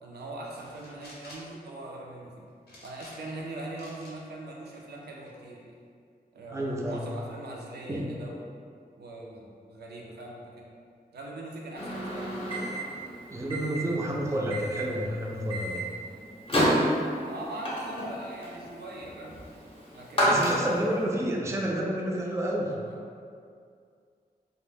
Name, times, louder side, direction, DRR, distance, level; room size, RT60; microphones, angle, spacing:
voice 1, 0.0-2.5 2.8-5.7 6.3-8.4 9.0-10.7 11.1-12.6 13.8-14.1 17.2-19.4 19.9-20.9 22.7-23.0, right 2 dB, 90° right, -2 dB, 0.4 m, -41 dB
sound 1, 0.5-1.5 2.7-3.4 3.8-4.2 4.7-5.3, left 1 dB, 85° left, 0.6 m, -50 dB
voice 2, 6.5-7.0 7.9-8.1 13.3-15.8 20.2-22.7, right 1 dB, 20° right, -2 dB, 0.3 m, -30 dB
Microwave oven, 11.7-21.0, equal, 35° left, 0.6 m, -30 dB
2.1 x 2.0 x 3.3 m, 2.2 s
wide cardioid pair, 75°, 16 cm